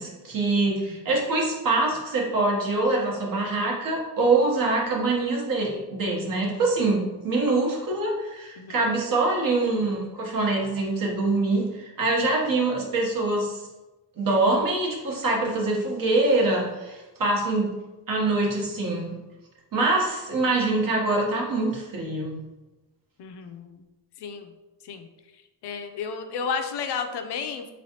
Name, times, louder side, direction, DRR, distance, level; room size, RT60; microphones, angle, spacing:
voice 1, 0.0-13.6 14.2-17.7 18.1-19.1 19.7-22.4, right 2 dB, 50° right, -1 dB, 1.0 m, -24 dB
voice 2, 23.2-23.8 24.2-24.5 24.8-25.1 25.6-27.7, left 6 dB, 70° left, 7 dB, 0.5 m, -32 dB
4.5 x 3.1 x 2.8 m, 1.1 s
wide cardioid pair, 165°, 42 cm